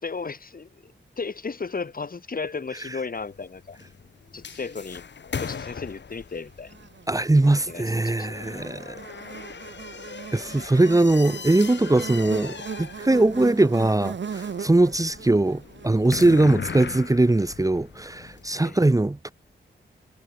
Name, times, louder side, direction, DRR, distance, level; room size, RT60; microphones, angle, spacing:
voice 1, 0.0-3.8 4.3-5.0 5.4-6.7 7.7-8.3 18.6-18.8, left 4 dB, 45° left, 4.6 m, -34 dB
sound 1, 3.2-18.6, left 6 dB, 65° left, 4.5 m, -39 dB
Buzz, 6.7-17.1, right 6 dB, 70° right, 2.7 m, -39 dB
voice 2, 7.1-9.0 10.3-19.3, right 2 dB, 15° right, 1.6 m, -21 dB
wide cardioid pair, 95°, 20 cm